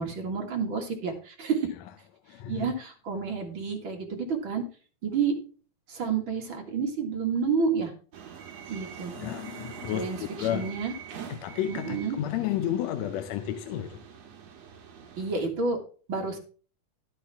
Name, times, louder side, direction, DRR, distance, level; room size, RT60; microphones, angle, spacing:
voice 1, 0.0-1.7 2.5-4.6 5.0-5.3 5.9-7.9 8.7-9.1 9.9-10.9 11.7-12.2 15.2-15.8 16.1-16.4, right 5 dB, 45° right, 2.5 m, -29 dB
voice 2, 2.3-2.7 9.1-10.8 11.3-14.0, left 11 dB, 75° left, 1.8 m, -32 dB
sound 1, 8.1-15.5, right 7 dB, 60° right, 2.6 m, -44 dB
12.0 x 9.0 x 3.5 m
omnidirectional pair, 3.4 m